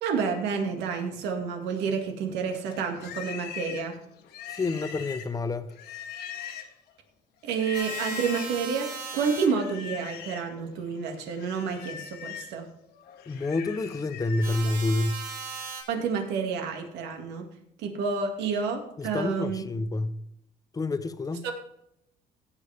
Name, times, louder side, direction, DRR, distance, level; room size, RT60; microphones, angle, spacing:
voice 1, 0.0-4.0 7.4-12.7 15.9-17.5 17.8-19.6 21.4-21.5, right 5 dB, 85° right, 2.2 m, -29 dB
Livestock farm animals working animals, 2.6-6.9 7.5-8.6 9.4-10.5 10.9-14.6, left 9 dB, 75° left, 1.7 m, -41 dB
voice 2, 4.5-5.7 13.3-15.2 19.0-20.2 20.7-21.4, left 2 dB, 20° left, 0.8 m, -28 dB
sound 1, 7.7-9.5 14.4-15.8, right 5 dB, 55° right, 5.3 m, -37 dB
16.5 x 8.5 x 3.5 m
cardioid pair, 110°, 17 cm